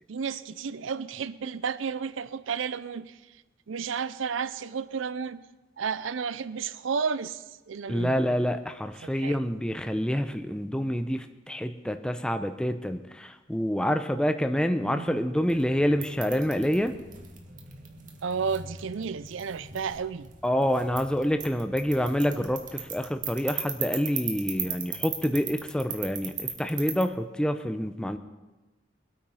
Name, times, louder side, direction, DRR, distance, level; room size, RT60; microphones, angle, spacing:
voice 1, 0.1-3.4 3.7-5.4 5.8-8.4 9.0-9.4 14.8-15.2 18.2-20.3, right 6 dB, 80° right, 16 dB, 0.5 m, -32 dB
voice 2, 7.9-16.9 20.4-28.2, equal, 5° left, 7 dB, 0.6 m, -27 dB
sound 1, 15.3-27.0, right 7 dB, 45° right, 1.8 m, -38 dB
22.5 x 8.9 x 5.6 m, 1.1 s
head